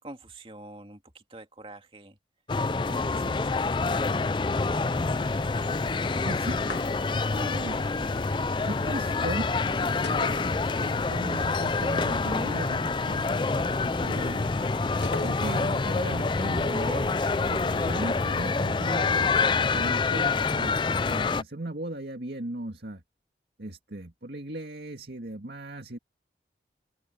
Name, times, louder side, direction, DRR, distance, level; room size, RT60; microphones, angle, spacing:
voice 1, 0.0-2.2 2.8-3.9, right 2 dB, 30° right, 2.5 m, -46 dB
sound 1, 2.5-21.4, left 4 dB, 25° left, 0.4 m, -27 dB
sound 2, 4.9-18.7, right 2 dB, 85° right, 4.8 m, -47 dB
voice 2, 6.2-7.0 7.3-8.1 8.6-14.6 15.2-19.3 19.6-20.8 21.0-23.0 23.6-26.0, right 1 dB, 70° right, 2.0 m, -38 dB
sound 3, 6.6-7.3 10.0-11.1 11.3-11.4 15.0-15.8, left 2 dB, 70° left, 2.2 m, -39 dB
open air
head